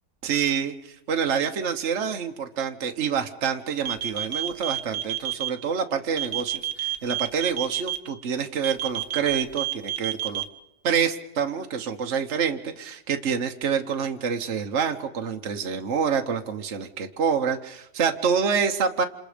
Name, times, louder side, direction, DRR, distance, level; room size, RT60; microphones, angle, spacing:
voice 1, 0.2-10.4 10.8-19.0, right 6 dB, 45° right, 4 dB, 1.3 m, -27 dB
sound 1, 3.8-5.5 6.2-8.0 8.6-10.4, right 13 dB, 70° right, 1.7 m, -28 dB
28.0 x 27.5 x 5.1 m, 0.85 s
omnidirectional pair, 1.8 m